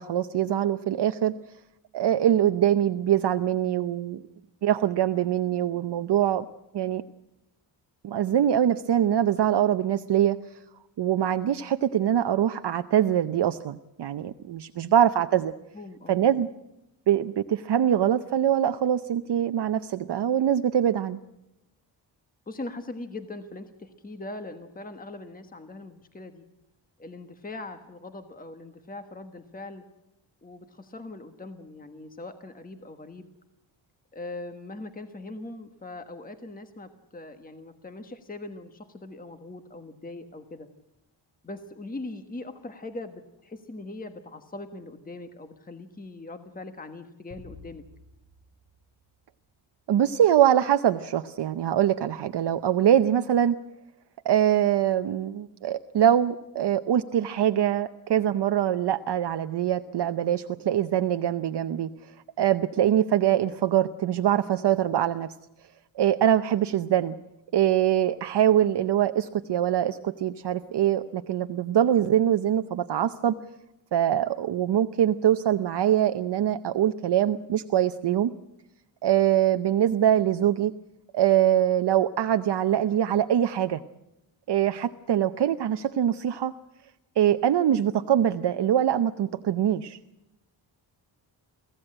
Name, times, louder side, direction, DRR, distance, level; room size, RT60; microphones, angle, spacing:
voice 1, 0.0-1.3 1.9-4.2 4.6-6.4 6.7-7.0 8.0-10.4 11.0-15.5 16.1-16.5 17.1-21.2 49.9-53.6 54.2-61.9 62.4-65.3 66.0-67.1 67.5-73.4 73.9-78.3 79.0-80.7 81.1-83.8 84.5-86.5 87.2-90.0, right 10 dB, 60° right, 9 dB, 0.8 m, -23 dB
voice 2, 15.7-16.2 22.5-26.4 27.0-29.8 30.4-33.3 34.1-40.7 41.4-47.8, left 2 dB, 20° left, 8 dB, 1.4 m, -41 dB
sound 1, 47.3-49.9, left 3 dB, 55° left, 5.0 m, -52 dB
23.5 x 16.0 x 8.8 m, 0.91 s
wide cardioid pair, 145°, 46 cm